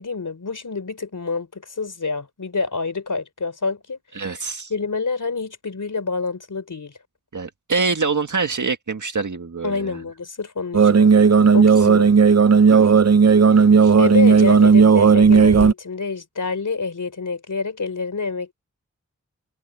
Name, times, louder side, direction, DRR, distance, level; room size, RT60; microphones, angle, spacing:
voice 1, 0.0-4.4 4.7-7.0 9.6-11.1 11.5-12.1 14.0-18.5, left 4 dB, 85° left, 3.7 m, -27 dB
voice 2, 4.1-4.7 7.3-10.0 11.8-11.9 12.7-12.9 13.8-13.9, right 4 dB, 75° right, 1.8 m, -25 dB
sound 1, 10.7-15.7, right 5 dB, 60° right, 0.7 m, -13 dB
wide cardioid pair, 50°, 30 cm